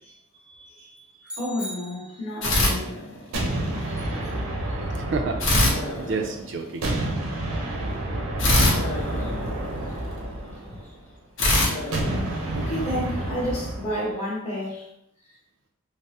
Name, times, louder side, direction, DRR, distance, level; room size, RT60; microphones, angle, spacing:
voice 1, 0.5-1.3 4.9-5.4 6.1-7.1, right 4 dB, 55° right, 0.3 m, -31 dB
sound 1, 1.2-2.6, equal, 5° right, 0.6 m, -39 dB
voice 2, 1.4-3.0 4.6-4.7 7.9-8.0 9.2-9.3 10.6-10.8 12.5-14.9 15.2-15.4, equal, 30° left, 0.8 m, -31 dB
sound 2, 2.4-3.6 5.4-6.8 8.4-10.1 11.4-12.9, left 1 dB, 65° left, 0.7 m, -24 dB
sound 3, 3.3-6.4 6.8-11.1 11.9-14.0, right 1 dB, 90° right, 0.6 m, -29 dB
3.3 x 2.0 x 2.7 m
head